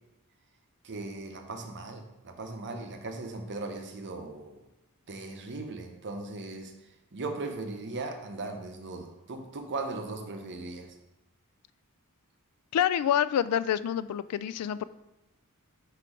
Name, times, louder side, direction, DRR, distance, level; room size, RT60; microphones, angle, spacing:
voice 1, 0.8-4.6 5.1-6.7 7.1-10.9, right 3 dB, 55° right, 5 dB, 0.8 m, -38 dB
voice 2, 12.7-14.8, left 9 dB, 85° left, 17 dB, 0.3 m, -27 dB
4.8 x 4.5 x 5.0 m, 1.0 s
head